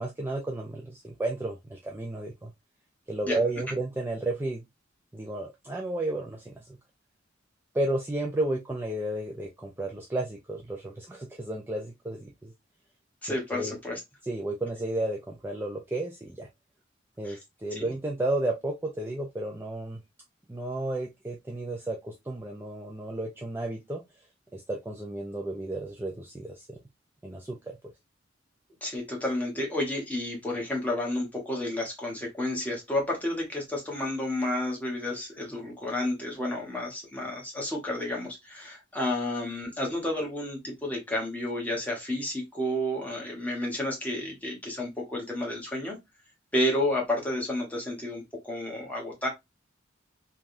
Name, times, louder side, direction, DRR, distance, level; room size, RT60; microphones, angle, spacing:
voice 1, 0.0-2.5 3.1-4.7 5.1-6.8 7.7-12.5 13.3-13.7 14.2-16.5 17.2-20.0 20.5-24.0 24.5-26.8 27.2-27.8, right 2 dB, 10° right, 0.4 m, -32 dB
voice 2, 13.2-14.0 17.2-17.4 17.8-17.9 28.8-46.0 46.5-49.3, left 1 dB, 10° left, 1.0 m, -31 dB
3.3 x 2.3 x 2.5 m
head